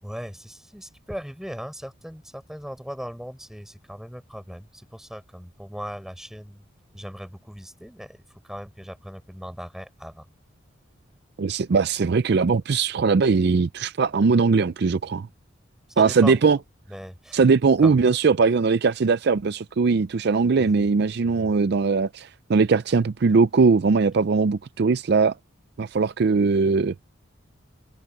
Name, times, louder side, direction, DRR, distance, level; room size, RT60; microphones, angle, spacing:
voice 1, 0.0-6.6 6.9-10.3 15.9-16.6 16.9-17.4 17.8-18.0 20.6-20.9 21.2-21.5, equal, ahead, 6.3 m, -38 dB
voice 2, 11.4-15.3 16.0-16.6 17.3-25.3 25.8-26.9, right 4 dB, 50° right, 0.4 m, -20 dB
open air
head